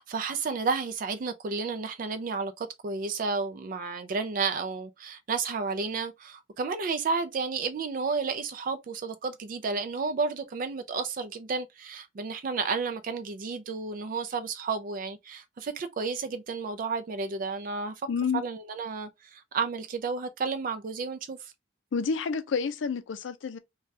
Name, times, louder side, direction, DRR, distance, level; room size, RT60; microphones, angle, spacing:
voice 1, 0.0-17.9 18.3-21.5, right 4 dB, 45° right, 0.4 m, -32 dB
voice 2, 18.1-18.4 21.9-23.6, left 5 dB, 75° left, 0.4 m, -29 dB
2.6 x 2.3 x 3.2 m
head